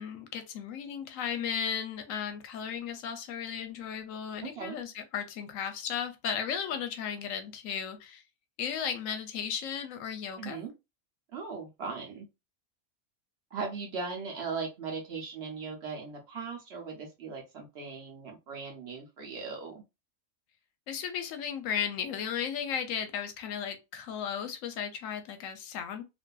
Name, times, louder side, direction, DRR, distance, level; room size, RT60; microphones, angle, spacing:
voice 1, 0.0-8.2 8.6-10.6 20.9-26.0, left 8 dB, 70° left, 0.9 m, -35 dB
voice 2, 10.4-10.7 11.3-12.3 13.5-19.8, right 5 dB, 60° right, 0.8 m, -38 dB
2.5 x 2.5 x 2.2 m
omnidirectional pair, 1.6 m